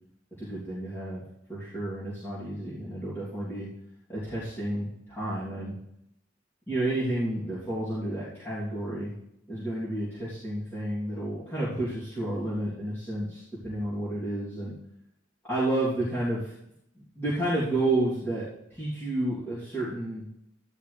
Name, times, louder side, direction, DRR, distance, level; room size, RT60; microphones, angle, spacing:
voice 1, 0.4-1.2 1.5-3.7 4.1-5.8 6.7-9.1 9.5-14.7 15.5-16.5 16.9-18.4 18.7-20.2, right 1 dB, 10° left, -11 dB, 3.1 m, -31 dB
13.0 x 11.0 x 3.4 m, 0.81 s
head